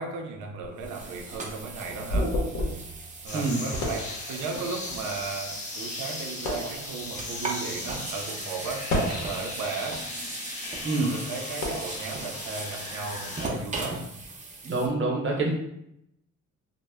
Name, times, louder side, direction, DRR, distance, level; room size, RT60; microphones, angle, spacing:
voice 1, 0.0-2.4 3.2-10.1 11.0-14.1, right 4 dB, 90° right, 4 dB, 0.5 m, -36 dB
sound 1, 0.6-14.9, right 3 dB, 25° right, 0.4 m, -39 dB
sound 2, 1.2-4.9 5.6-5.8 6.3-6.8 7.6-7.8 8.7-9.8 10.3-12.8, left 1 dB, 85° left, 0.7 m, -32 dB
sound 3, 3.3-13.5, left 2 dB, 25° left, 0.6 m, -38 dB
voice 2, 14.6-15.5, right 3 dB, 40° right, -1 dB, 0.8 m, -26 dB
2.0 x 2.0 x 3.3 m, 0.78 s
cardioid pair, 90°, 30 cm